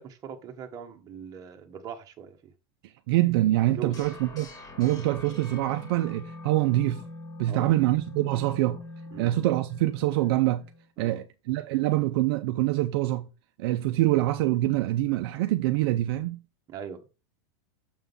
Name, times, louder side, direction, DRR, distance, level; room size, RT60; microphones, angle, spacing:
voice 1, 0.0-2.5 3.7-4.0 7.5-7.7 9.1-9.3 11.0-11.2 16.7-17.0, right 7 dB, 25° right, 1.2 m, -41 dB
voice 2, 2.8-7.0 7.4-8.8 9.2-10.6 11.0-13.3 13.6-16.4, right 16 dB, 55° right, 0.5 m, -25 dB
sound 1, 3.9-10.9, left 2 dB, 25° left, 1.8 m, -44 dB
7.0 x 3.7 x 5.3 m
supercardioid pair, 155°, 15 cm